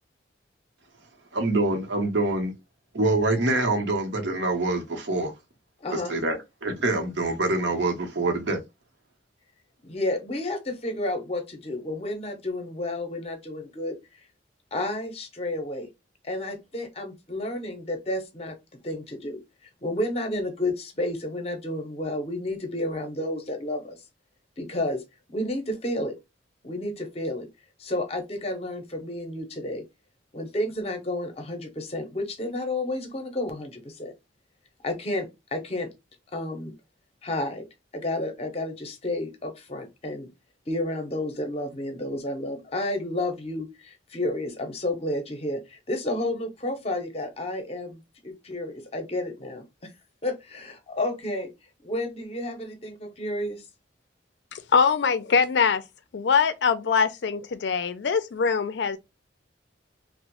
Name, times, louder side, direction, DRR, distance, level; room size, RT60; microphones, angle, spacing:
voice 1, 1.3-2.5 2.9-5.3 5.9-8.6, right 2 dB, 70° right, 0.8 m, -25 dB
voice 2, 5.8-6.2 9.8-14.0 14.7-15.9 16.2-18.6 18.8-19.4 19.8-24.0 24.6-25.0 25.3-26.2 26.6-27.5 27.8-29.8 30.3-34.1 34.8-35.9 36.3-36.7 37.2-37.7 37.9-40.3 40.7-49.9 50.2-51.5 51.8-53.6, left 1 dB, 35° left, 0.6 m, -31 dB
voice 3, 54.5-55.8 56.1-59.0, left 6 dB, 65° left, 0.4 m, -23 dB
2.9 x 2.0 x 2.9 m
head